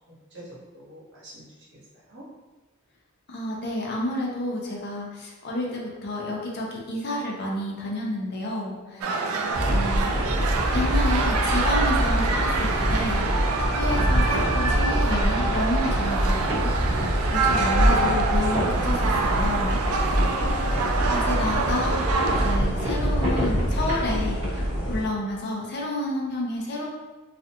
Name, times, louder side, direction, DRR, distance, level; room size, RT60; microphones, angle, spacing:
voice 1, 0.7-1.4 2.1-2.2 8.9-9.5, right 1 dB, 60° right, -7 dB, 1.0 m, -45 dB
voice 2, 3.3-9.2 9.7-10.1 10.7-20.1 20.7-26.9, left 1 dB, 50° left, -2 dB, 0.5 m, -30 dB
sound 1, 9.0-22.6, right 3 dB, 85° right, 0.3 m, -26 dB
sound 2, 9.5-25.0, equal, 25° right, 1.0 m, -25 dB
2.4 x 2.2 x 2.8 m, 1.2 s
head